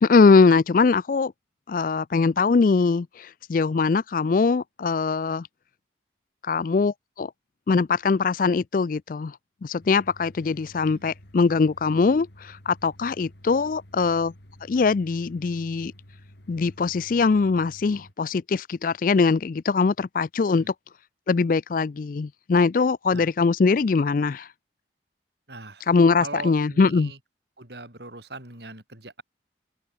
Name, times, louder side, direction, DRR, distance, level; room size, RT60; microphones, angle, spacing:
voice 1, 0.0-1.3 1.7-5.5 6.4-7.3 7.7-9.4 9.6-14.3 14.7-15.9 16.5-20.7 21.3-24.5 25.9-27.1, left 4 dB, 45° left, 0.4 m, -22 dB
sound 1, 9.8-18.1, left 1 dB, 65° left, 3.6 m, -50 dB
voice 2, 10.7-11.1 20.6-20.7 23.1-23.3 25.5-25.9 26.2-27.2 27.6-29.2, right 2 dB, 60° right, 5.0 m, -40 dB
open air
head